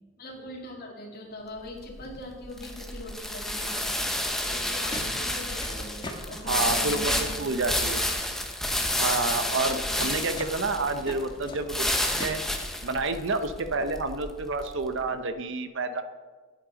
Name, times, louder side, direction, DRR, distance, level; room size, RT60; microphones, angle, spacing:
voice 1, 0.2-8.0 9.8-10.1 11.4-11.7, left 1 dB, 50° left, -1 dB, 2.5 m, -42 dB
sound 1, 1.6-14.9, left 1 dB, ahead, 0.9 m, -30 dB
sound 2, 4.4-12.3, left 1 dB, 25° left, 1.4 m, -43 dB
voice 2, 6.5-7.1 7.4-8.0 9.0-12.4 12.8-16.0, right 3 dB, 65° right, 9 dB, 0.8 m, -29 dB
sound 3, 6.7-7.8 8.1-8.5 9.8-10.1 11.9-12.1 12.6-13.6, left 7 dB, 75° left, 1.2 m, -49 dB
10.5 x 8.7 x 5.1 m, 1.4 s
head